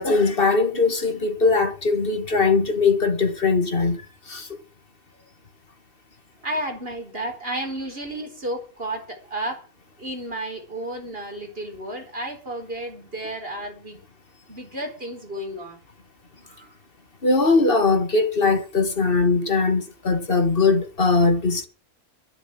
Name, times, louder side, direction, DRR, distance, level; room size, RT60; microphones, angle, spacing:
voice 1, 0.0-4.6 17.2-21.7, left 4 dB, 40° left, 2.2 m, -20 dB
voice 2, 6.4-9.7 10.0-14.0 14.5-15.8 16.4-16.7, right 1 dB, 40° right, 4.6 m, -32 dB
22.5 x 7.5 x 6.2 m
omnidirectional pair, 1.5 m